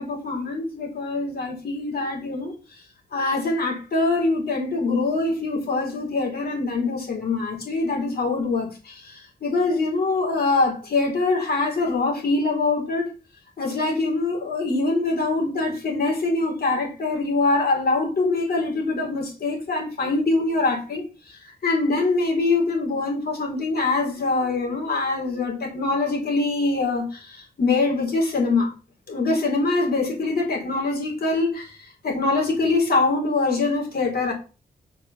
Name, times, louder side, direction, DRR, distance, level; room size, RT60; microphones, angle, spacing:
voice 1, 0.0-2.5 3.1-13.1 13.6-21.0 21.6-28.7 29.1-31.7 32.0-34.3, left 3 dB, 65° left, 4.4 m, -24 dB
6.5 x 5.3 x 6.9 m
cardioid pair, 75°, 18 cm